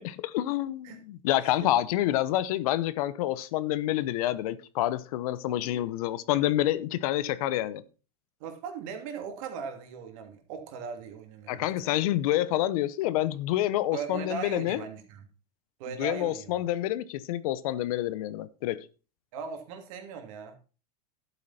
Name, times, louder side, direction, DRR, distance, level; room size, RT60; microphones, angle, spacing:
voice 1, 0.0-7.8 11.5-14.8 16.0-18.9, left 14 dB, 65° left, 0.9 m, -28 dB
voice 2, 8.4-12.0 13.9-15.2 15.8-16.5 19.3-20.6, right 6 dB, 55° right, 2.9 m, -39 dB
12.0 x 8.4 x 4.3 m
supercardioid pair, 145°, 20 cm